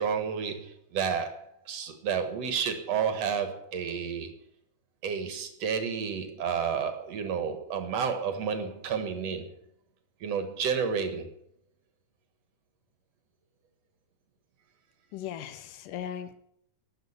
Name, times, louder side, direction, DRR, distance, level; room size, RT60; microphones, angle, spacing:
voice 1, 0.0-4.3 5.0-9.6 10.2-11.3, right 6 dB, 60° right, 8 dB, 2.5 m, -31 dB
voice 2, 15.1-16.4, left 10 dB, 85° left, 12 dB, 2.6 m, -38 dB
12.5 x 8.0 x 9.5 m, 0.71 s
omnidirectional pair, 3.7 m